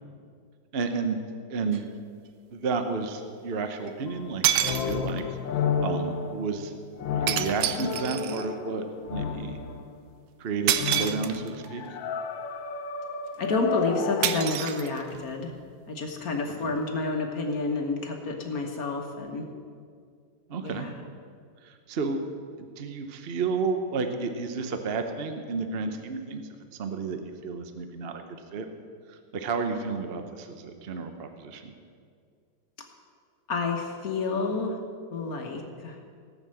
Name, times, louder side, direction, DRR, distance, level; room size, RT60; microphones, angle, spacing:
voice 1, 0.7-1.2 1.5-1.8 2.5-5.2 5.8-6.8 7.1-8.8 9.1-9.6 10.4-11.8 16.5-16.8 20.5-20.9 21.6-22.2 22.8-28.2 28.5-28.7 29.1-31.7, right 4 dB, 55° right, 6 dB, 0.6 m, -31 dB
sound 1, 1.7-1.8 3.9-4.0 4.4-5.3 7.3-8.5 10.7-11.7 14.2-15.3, right 11 dB, 80° right, 1.4 m, -28 dB
sound 2, 4.1-10.0 10.7-14.5, left 6 dB, 70° left, 1.4 m, -32 dB
voice 2, 13.4-15.5 15.9-19.4 20.6-20.9 33.5-34.8 35.1-36.0, left 3 dB, 50° left, 2 dB, 1.5 m, -29 dB
17.0 x 6.5 x 7.7 m, 2.2 s
omnidirectional pair, 2.3 m